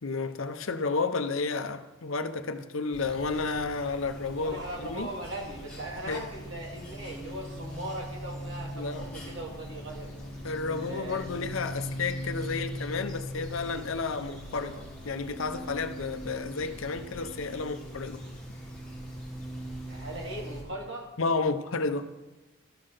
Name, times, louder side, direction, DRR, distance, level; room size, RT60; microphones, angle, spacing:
voice 1, 0.0-5.1 6.1-6.2 8.8-9.1 10.4-18.2 21.2-22.1, left 4 dB, 70° left, 10 dB, 0.7 m, -31 dB
sound 1, 2.9-20.6, equal, 5° left, 2.9 m, -41 dB
voice 2, 4.4-10.1 10.6-11.3 19.9-21.1, right 1 dB, 60° right, -1 dB, 2.5 m, -39 dB
12.5 x 5.7 x 6.6 m, 1.1 s
head